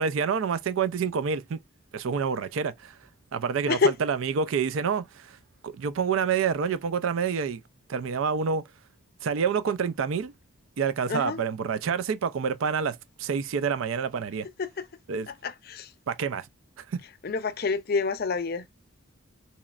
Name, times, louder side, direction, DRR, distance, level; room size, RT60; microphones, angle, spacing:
voice 1, 0.0-1.6 1.9-3.0 3.3-5.4 5.6-7.6 7.9-8.6 9.2-10.3 10.8-14.5 15.1-15.3 16.1-16.5 16.8-17.0, right 6 dB, 80° right, 0.4 m, -28 dB
voice 2, 11.1-11.4 15.3-15.9 17.2-18.6, left 4 dB, 50° left, 0.5 m, -27 dB
4.1 x 3.1 x 2.3 m
head